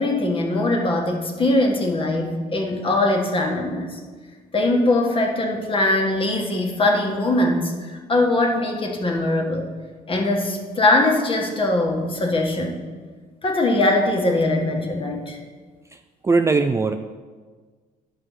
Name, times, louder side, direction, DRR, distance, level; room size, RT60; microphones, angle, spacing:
voice 1, 0.0-4.0 4.5-9.7 10.1-12.8 13.4-15.4, left 2 dB, 30° left, 1 dB, 1.7 m, -21 dB
voice 2, 16.2-17.0, right 4 dB, 15° right, 6 dB, 0.4 m, -19 dB
11.0 x 5.5 x 5.7 m, 1.5 s
cardioid pair, 110°, 17 cm